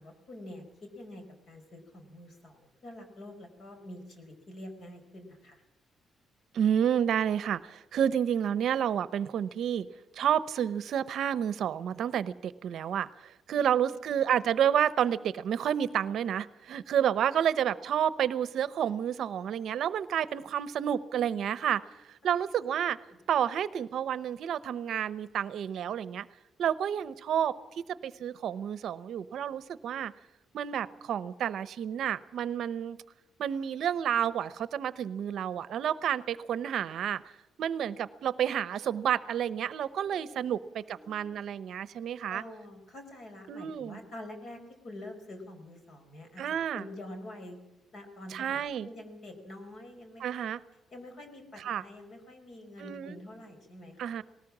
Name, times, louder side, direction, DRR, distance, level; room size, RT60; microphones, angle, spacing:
voice 1, 0.0-5.6 13.5-13.8 14.1-14.2 17.3-17.5 22.3-22.8 23.1-23.2 40.1-41.4 42.3-46.4 46.7-47.6 47.9-50.5 50.9-54.0, left 1 dB, 45° left, 5 dB, 4.8 m, -47 dB
voice 2, 6.5-9.9 10.1-21.8 22.1-23.0 23.3-26.3 26.6-30.1 30.5-33.0 33.4-37.3 37.6-42.4 43.5-44.0 46.4-46.8 48.3-48.9 50.2-50.6 51.6-51.8 52.8-53.2 54.0-54.2, right 9 dB, 60° right, 16 dB, 0.8 m, -30 dB
19.5 x 18.5 x 7.4 m, 0.95 s
cardioid pair, 175°, 0 cm